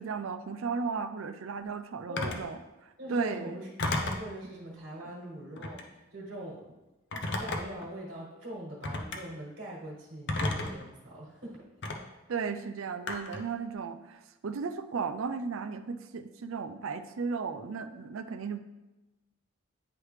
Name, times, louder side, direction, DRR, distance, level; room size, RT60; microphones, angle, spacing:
voice 1, 0.0-2.6 2.8-3.6 5.0-5.1 12.3-18.6, right 5 dB, 70° right, 9 dB, 0.4 m, -35 dB
voice 2, 2.1-2.4 3.0-5.8 6.1-6.6 7.4-11.6, right 1 dB, 50° right, -5 dB, 1.5 m, -42 dB
Telephone, 2.2-2.5 3.8-4.3 5.5-5.9 7.1-7.8 8.8-9.2 10.3-10.8 11.8-12.0 13.1-13.5, left 2 dB, 55° left, 0.6 m, -32 dB
9.7 x 3.3 x 3.2 m, 1.0 s
head